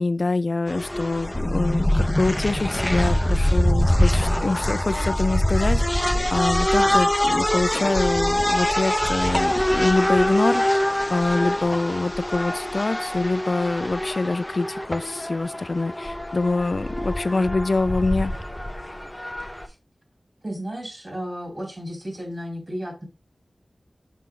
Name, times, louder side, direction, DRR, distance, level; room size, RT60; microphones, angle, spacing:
voice 1, 0.0-18.3, left 3 dB, 55° left, 0.4 m, -25 dB
sound 1, 0.7-19.7, left 1 dB, 10° left, 0.8 m, -24 dB
voice 2, 20.4-23.1, equal, 35° right, 3.4 m, -33 dB
6.2 x 4.4 x 3.9 m
cardioid pair, 45°, 0 cm